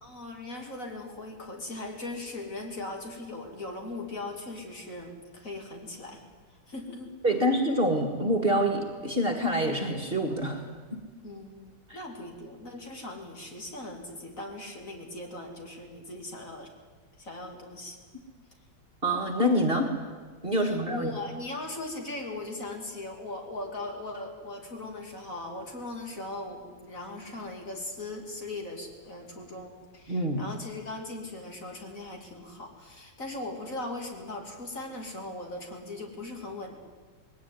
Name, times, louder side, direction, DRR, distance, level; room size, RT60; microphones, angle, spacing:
voice 1, 0.0-6.2 6.7-7.1 11.2-16.7 17.2-18.0 20.6-36.8, left 2 dB, 45° left, 2 dB, 3.2 m, -39 dB
voice 2, 7.2-10.7 11.9-12.0 19.0-19.9 20.4-21.1 30.1-30.4, equal, 30° right, 3 dB, 2.0 m, -26 dB
20.5 x 17.5 x 9.6 m, 1.5 s
omnidirectional pair, 2.1 m